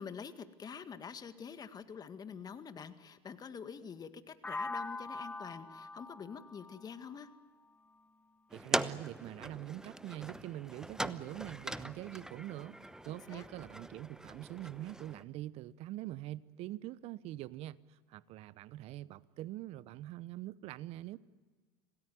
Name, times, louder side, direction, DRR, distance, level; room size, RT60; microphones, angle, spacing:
voice 1, 0.0-7.3 13.3-13.5, left 6 dB, 30° left, 1.9 m, -46 dB
sound 1, 4.4-8.3, left 2 dB, 10° left, 1.2 m, -44 dB
sound 2, 8.5-15.2, right 1 dB, 5° right, 1.0 m, -41 dB
voice 2, 8.5-12.8 13.0-21.2, right 15 dB, 50° right, 0.9 m, -44 dB
27.0 x 18.5 x 9.4 m
hypercardioid pair, 80°, 13 cm